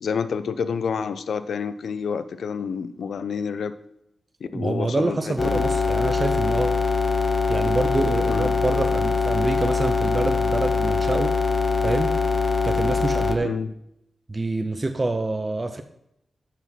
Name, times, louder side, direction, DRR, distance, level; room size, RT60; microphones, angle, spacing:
voice 1, 0.0-3.8 4.5-5.2 5.4-5.6 8.3-8.5 13.4-13.7, left 6 dB, 90° left, 0.5 m, -28 dB
voice 2, 4.5-6.8 7.5-11.4 11.8-12.2 12.6-13.6 14.3-15.8, right 2 dB, 25° right, 0.5 m, -26 dB
sound 1, 5.4-13.4, left 4 dB, 35° left, 0.6 m, -23 dB
7.3 x 5.8 x 6.0 m
wide cardioid pair, 130°, 0 cm